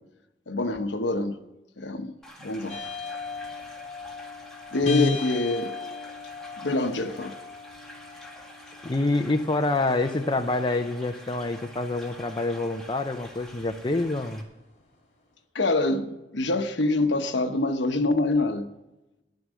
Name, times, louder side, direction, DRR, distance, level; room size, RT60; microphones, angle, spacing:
voice 1, 0.5-1.4 1.8-2.1 2.4-2.8 4.7-5.7 6.6-7.4 15.5-18.7, left 2 dB, 75° left, 1.0 m, -25 dB
sound 1, 2.2-14.4, left 1 dB, 5° left, 1.9 m, -47 dB
sound 2, 2.7-14.8, left 5 dB, 40° left, 3.5 m, -40 dB
voice 2, 4.9-5.2 8.8-14.4, left 2 dB, 25° left, 0.6 m, -26 dB
14.5 x 11.0 x 6.3 m
head